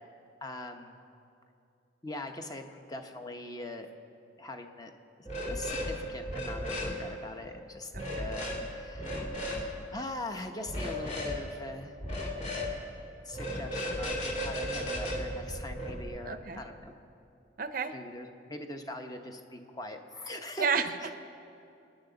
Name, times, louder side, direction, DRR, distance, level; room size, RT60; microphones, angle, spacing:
voice 1, 0.4-1.0 2.0-3.9 4.4-4.9 5.2-12.0 13.2-16.9 17.9-20.7 21.0-21.1, left 1 dB, 20° left, 4 dB, 0.9 m, -42 dB
sound 1, 5.3-5.9 6.2-6.9 7.9-8.6 9.0-9.6 10.7-11.4 12.0-12.7 13.3-16.0, left 1 dB, 35° left, 2.2 m, -35 dB
voice 2, 7.9-8.3 16.3-16.6 17.6-17.9 20.6-20.8, right 6 dB, 50° right, 9 dB, 0.6 m, -31 dB
29.0 x 10.0 x 3.9 m, 2.6 s
head